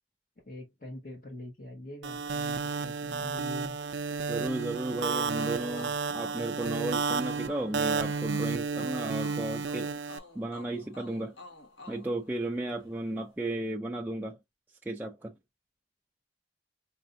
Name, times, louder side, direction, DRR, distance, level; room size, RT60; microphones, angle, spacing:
voice 1, 0.4-3.8, left 1 dB, 45° left, 1.0 m, -43 dB
sound 1, 2.0-10.2, right 5 dB, 70° right, 0.4 m, -32 dB
voice 2, 4.3-11.4 11.9-14.4 14.9-15.4, right 2 dB, 10° right, 0.3 m, -34 dB
sound 2, 5.3-12.9, left 2 dB, 90° left, 1.3 m, -50 dB
4.2 x 2.6 x 2.5 m
head